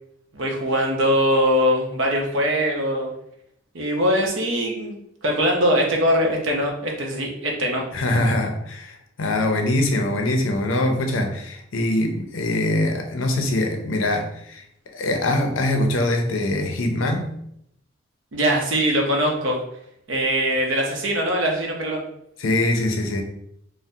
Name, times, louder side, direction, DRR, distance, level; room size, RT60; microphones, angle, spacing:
voice 1, 0.3-3.1 3.7-4.9 5.2-7.9 18.3-19.6 20.1-22.0, equal, 75° right, 0 dB, 0.7 m, -22 dB
voice 2, 7.9-14.6 14.9-17.3 22.4-23.2, left 1 dB, 75° left, 4 dB, 0.5 m, -23 dB
3.3 x 2.0 x 2.6 m, 0.75 s
head